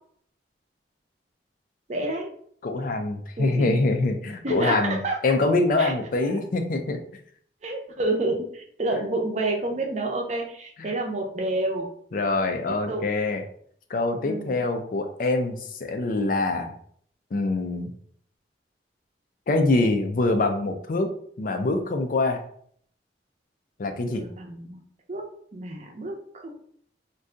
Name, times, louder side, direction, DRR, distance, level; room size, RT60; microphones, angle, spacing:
voice 1, 1.9-2.3 3.4-3.8 4.4-5.2 5.8-5.9 7.6-11.9 12.7-13.1 14.2-14.6 24.0-24.8 25.1-25.3 25.5-26.5, right 2 dB, 40° right, 1 dB, 0.6 m, -29 dB
voice 2, 2.6-5.0 5.2-7.0 10.8-10.9 12.1-13.4 13.9-16.7 17.3-17.9 19.5-21.1 21.4-22.4 23.8-24.2, left 2 dB, 50° left, 6 dB, 0.4 m, -24 dB
2.6 x 2.2 x 3.7 m, 0.62 s
head